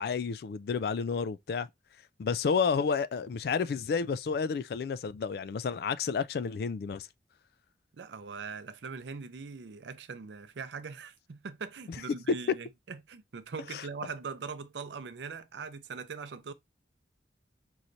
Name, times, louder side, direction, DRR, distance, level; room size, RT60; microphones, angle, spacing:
voice 1, 0.0-1.7 2.2-7.1 12.3-12.4 13.7-13.8, left 5 dB, 60° left, 0.3 m, -30 dB
voice 2, 8.0-16.5, right 5 dB, 80° right, 0.5 m, -41 dB
5.5 x 3.1 x 2.6 m
head